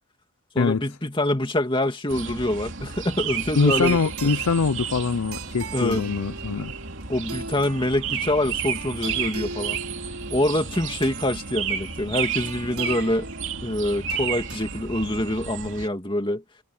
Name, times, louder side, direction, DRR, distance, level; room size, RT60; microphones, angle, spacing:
voice 1, 0.5-4.0 5.7-6.0 7.1-9.8 10.3-13.3 13.6-16.4, left 1 dB, 20° left, 2.3 m, -25 dB
sound 1, 2.1-15.9, right 7 dB, 55° right, 3.3 m, -32 dB
voice 2, 3.6-6.7, left 4 dB, 85° left, 0.6 m, -23 dB
sound 2, 3.8-14.8, right 3 dB, 85° right, 3.1 m, -41 dB
head